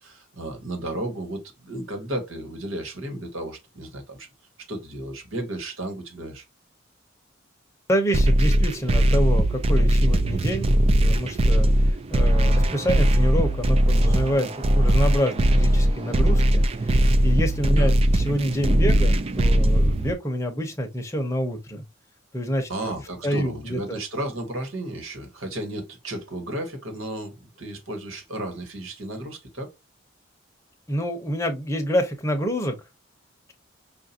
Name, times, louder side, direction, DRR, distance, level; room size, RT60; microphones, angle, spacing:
voice 1, 0.0-4.3 4.7-6.4 17.7-18.0 22.7-29.7, right 1 dB, 90° right, 1.4 m, -33 dB
voice 2, 7.9-10.7 11.0-21.8 22.3-22.9 23.2-24.0 30.9-32.8, equal, 15° left, 0.8 m, -27 dB
sound 1, 8.1-20.1, right 1 dB, 30° right, 0.3 m, -20 dB
5.5 x 2.5 x 2.7 m
head